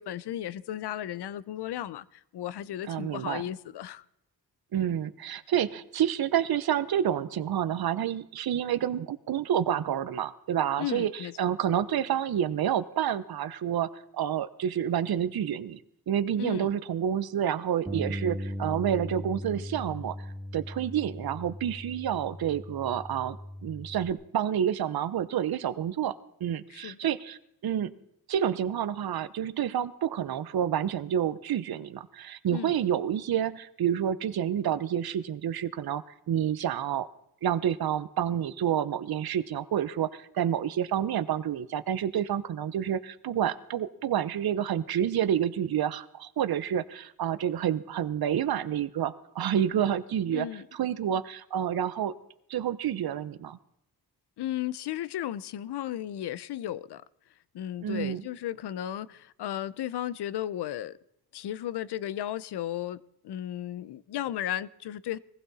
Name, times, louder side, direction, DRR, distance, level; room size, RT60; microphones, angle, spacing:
voice 1, 0.0-4.0 10.8-11.3 16.4-16.7 26.7-27.0 32.5-32.8 50.3-50.6 54.4-57.0 57.5-61.0 61.3-65.2, left 12 dB, 85° left, 0.7 m, -35 dB
voice 2, 2.9-3.4 4.7-15.8 16.1-20.2 20.5-23.4 23.6-27.9 28.3-37.1 37.4-52.1 52.5-53.6 57.8-58.2, right 9 dB, 65° right, 0.9 m, -29 dB
Bass guitar, 17.9-24.1, equal, ahead, 2.5 m, -38 dB
21.0 x 15.5 x 4.2 m
cardioid pair, 75°, 39 cm